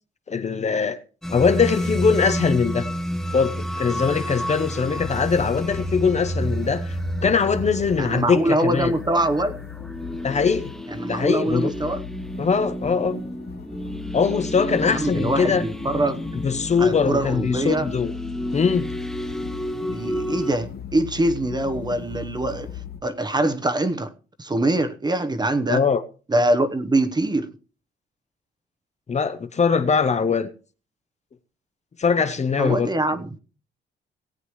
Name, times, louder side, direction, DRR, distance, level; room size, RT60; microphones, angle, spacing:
voice 1, 0.3-1.0 1.3-2.9 3.3-7.0 7.2-8.9 10.2-10.7 11.1-11.7 12.4-13.2 14.1-15.6 16.4-18.1 18.5-18.9 25.7-26.0 29.1-30.5 32.0-32.9, left 5 dB, 35° left, 0.9 m, -21 dB
sound 1, 1.2-20.5, equal, ahead, 0.8 m, -31 dB
sound 2, 4.9-23.0, left 9 dB, 55° left, 1.2 m, -38 dB
voice 2, 8.0-9.6 10.9-12.0 14.9-16.2 16.8-17.9 19.9-22.7 23.0-24.1 24.4-25.8 26.3-27.6 32.6-33.3, right 1 dB, 20° right, 1.0 m, -23 dB
18.5 x 8.1 x 3.1 m
cardioid pair, 90°, 20 cm